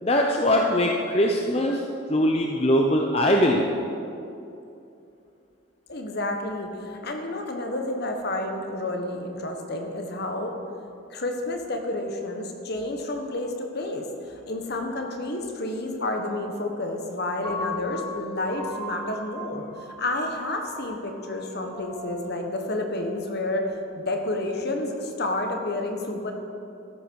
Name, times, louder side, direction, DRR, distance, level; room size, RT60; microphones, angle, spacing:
voice 1, 0.0-1.8 2.1-3.7, left 1 dB, 30° left, 1 dB, 0.7 m, -21 dB
voice 2, 5.9-10.6 11.1-26.3, left 2 dB, 50° left, 3 dB, 1.4 m, -30 dB
Piano, 17.4-23.6, left 2 dB, 10° left, 2.2 m, -39 dB
14.0 x 11.5 x 4.7 m, 2.7 s
head